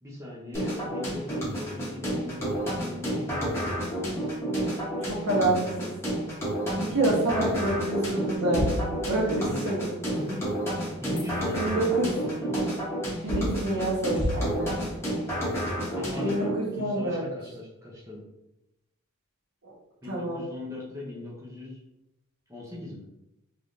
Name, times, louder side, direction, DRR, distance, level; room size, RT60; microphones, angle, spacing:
voice 1, 0.0-3.6 7.3-7.5 9.5-9.7 11.0-12.6 15.9-18.2 20.0-21.8 22.5-23.0, left 1 dB, 15° right, -5 dB, 0.8 m, -39 dB
sound 1, 0.5-16.5, equal, 10° left, 1.1 m, -30 dB
voice 2, 5.0-5.9 6.7-9.8 11.6-12.2 13.2-14.8 16.2-17.2 19.6-19.7 20.1-20.4, right 1 dB, 75° right, -5 dB, 1.4 m, -27 dB
3.6 x 3.2 x 2.6 m, 0.87 s
head